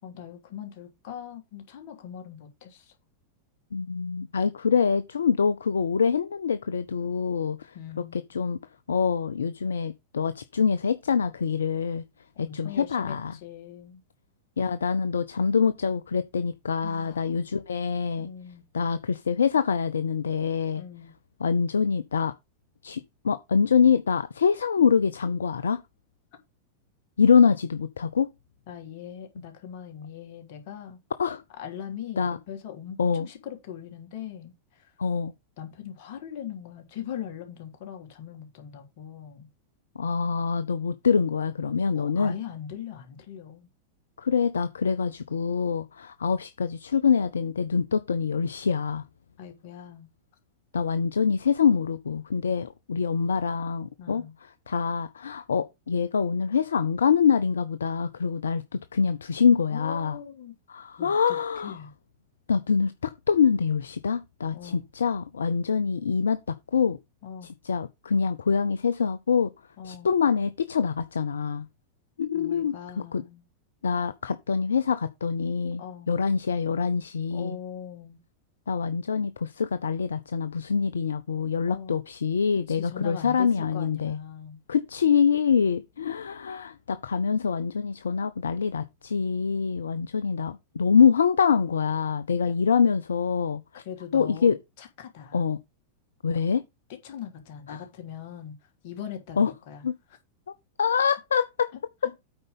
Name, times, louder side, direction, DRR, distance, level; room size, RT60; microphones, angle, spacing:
voice 1, 0.0-2.9 7.7-8.3 12.3-14.0 16.8-17.3 18.2-18.7 20.8-21.1 28.7-31.0 31.6-34.9 35.6-39.5 41.9-43.7 49.4-50.1 54.0-54.4 59.7-60.5 61.0-61.4 61.6-61.9 64.5-64.9 67.2-67.5 69.8-70.1 72.3-73.4 75.8-76.1 77.3-78.2 81.7-82.0 82.7-84.6 92.5-92.6 93.8-94.5 94.8-95.4 96.9-98.6 98.8-99.9 101.7-102.2, left 9 dB, 50° left, 3.2 m, -41 dB
voice 2, 3.7-7.8 8.1-8.6 8.9-12.0 12.4-13.3 14.6-18.3 18.7-20.8 21.4-22.3 22.8-25.8 27.2-28.3 31.2-31.4 32.2-32.4 33.0-33.3 35.0-35.3 40.0-42.3 44.2-49.0 50.7-54.2 54.7-60.2 60.7-61.8 62.5-67.0 67.6-69.5 69.8-71.7 72.2-72.7 73.1-73.2 73.8-77.6 78.7-84.2 84.7-93.8 94.1-94.6 95.3-95.6 96.2-96.6 97.7-97.8 99.4-99.5 99.8-99.9 100.8-101.7, left 6 dB, 70° left, 0.6 m, -25 dB
8.8 x 5.3 x 5.5 m
figure-of-eight pair, 90°, 0 cm